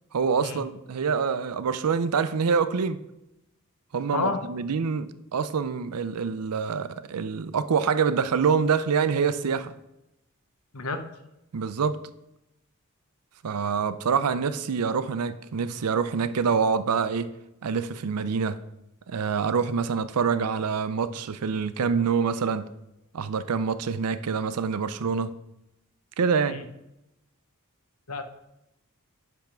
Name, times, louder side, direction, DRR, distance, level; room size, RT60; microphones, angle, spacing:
voice 1, 0.1-3.0 3.9-9.7 11.5-12.0 13.4-17.3 17.6-18.6 19.1-22.7 23.1-25.3 26.2-26.6, right 6 dB, 90° right, 0.5 m, -26 dB
voice 2, 4.1-4.4 10.7-11.1 26.4-26.7 28.1-28.2, left 4 dB, 75° left, 0.8 m, -30 dB
10.5 x 3.5 x 5.9 m
head